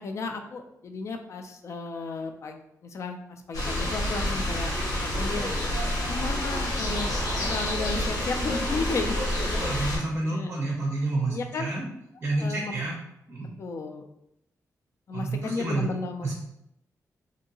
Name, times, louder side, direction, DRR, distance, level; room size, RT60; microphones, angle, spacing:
voice 1, 0.0-5.5 6.1-7.1 7.4-10.0 10.3-10.5 11.3-11.7 12.4-12.9 13.6-14.1 15.1-16.3, left 3 dB, 50° left, 5 dB, 0.3 m, -34 dB
sound 1, 3.5-10.0, left 1 dB, 75° left, 0.9 m, -28 dB
voice 2, 9.6-11.9 12.2-12.9 13.3-13.5 15.1-15.9 16.2-16.3, right 2 dB, 35° right, -2 dB, 0.5 m, -29 dB
2.7 x 2.6 x 2.7 m, 0.81 s
wide cardioid pair, 160°, 6 cm